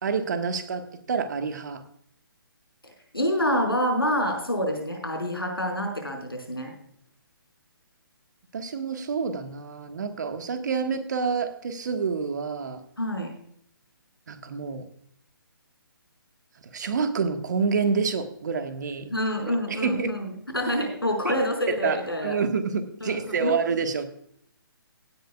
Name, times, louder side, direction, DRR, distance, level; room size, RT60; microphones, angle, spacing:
voice 1, 0.0-1.8 8.5-12.8 14.3-14.8 16.7-19.1 19.5-20.1 21.7-24.0, right 5 dB, 50° right, 8 dB, 1.5 m, -28 dB
voice 2, 3.1-6.7 13.0-13.3 19.1-22.4 23.0-23.5, equal, 90° left, 3 dB, 4.9 m, -27 dB
16.5 x 10.5 x 2.3 m, 0.68 s
figure-of-eight pair, 140°, 12 cm